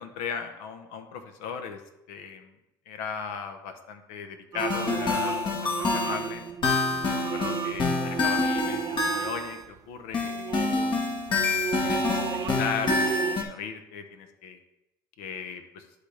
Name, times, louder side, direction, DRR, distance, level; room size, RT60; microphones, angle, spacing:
voice 1, 0.0-1.8 2.1-2.5 2.9-6.4 7.3-10.7 11.8-14.6 15.2-15.8, left 6 dB, 75° left, 7 dB, 1.0 m, -37 dB
sound 1, 4.5-9.8 10.2-13.4, right 7 dB, 35° right, 0.3 m, -34 dB
sound 2, 4.6-9.6 10.1-13.4, left 3 dB, 50° left, 1.4 m, -27 dB
11.5 x 4.2 x 3.4 m, 0.86 s
hypercardioid pair, 75°, 11 cm